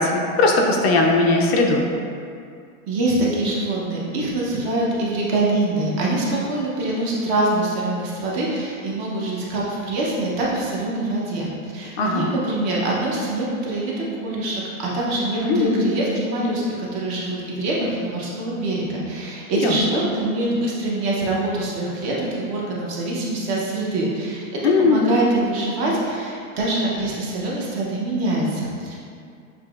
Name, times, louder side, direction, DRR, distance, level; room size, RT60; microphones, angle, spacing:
voice 1, 0.0-1.8 12.0-12.3 15.4-15.8 19.6-20.0 24.6-25.2, left 3 dB, 50° left, 1 dB, 0.5 m, -19 dB
voice 2, 2.9-24.5 24.8-28.9, right 2 dB, 30° right, -5 dB, 0.6 m, -24 dB
6.7 x 2.9 x 2.3 m, 2.3 s
supercardioid pair, 155°, 42 cm